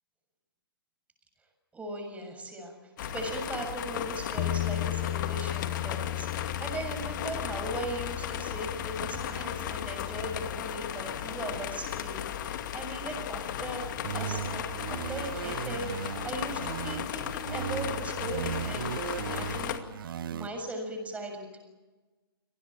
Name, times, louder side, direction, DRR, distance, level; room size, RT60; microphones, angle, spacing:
voice 1, 1.7-13.8 14.1-21.6, right 1 dB, 10° right, 4 dB, 7.0 m, -39 dB
sound 1, 3.0-19.8, left 10 dB, 50° left, 2.3 m, -36 dB
Bass guitar, 4.4-10.6, left 21 dB, 35° left, 0.7 m, -36 dB
sound 2, 14.0-17.1 17.5-20.5, right 9 dB, 60° right, 1.2 m, -37 dB
27.0 x 19.0 x 8.9 m, 1.2 s
figure-of-eight pair, 120°, 13 cm